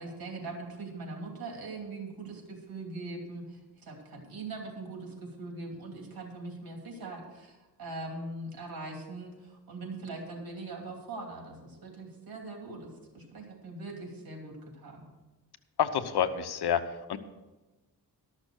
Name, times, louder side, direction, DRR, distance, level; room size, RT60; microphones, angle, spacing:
voice 1, 0.0-15.1, right 2 dB, 65° right, 1 dB, 2.8 m, -41 dB
voice 2, 15.8-16.8 17.1-17.2, left 9 dB, 80° left, 10 dB, 0.9 m, -28 dB
12.5 x 6.5 x 6.4 m, 1.1 s
cardioid pair, 90°, 39 cm